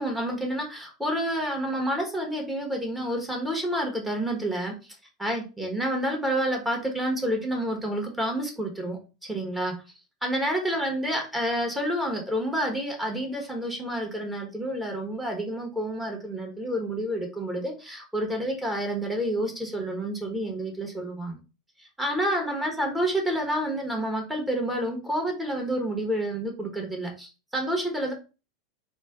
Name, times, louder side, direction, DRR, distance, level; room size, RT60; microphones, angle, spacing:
voice 1, 0.0-4.7 5.2-9.8 10.2-21.4 22.0-28.1, right 1 dB, 5° right, 1 dB, 1.1 m, -29 dB
3.2 x 2.2 x 3.5 m, 0.32 s
hypercardioid pair, 90°, 2 cm